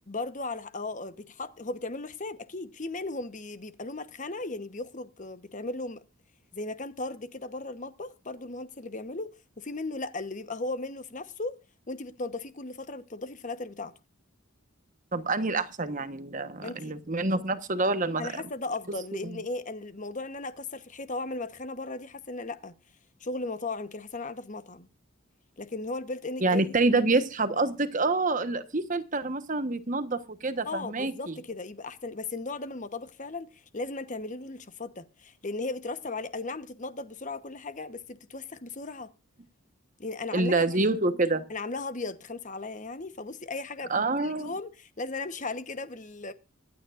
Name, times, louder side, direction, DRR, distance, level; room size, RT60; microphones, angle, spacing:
voice 1, 0.1-6.0 6.5-11.6 11.9-13.9 16.6-16.9 18.2-22.7 23.2-24.9 25.6-26.8 30.6-39.1 40.0-40.8 41.5-46.3, left 3 dB, 35° left, 1.0 m, -36 dB
voice 2, 15.1-18.3 26.4-31.3 40.3-41.4 43.9-44.5, right 3 dB, 40° right, 1.2 m, -27 dB
24.5 x 9.2 x 2.5 m
head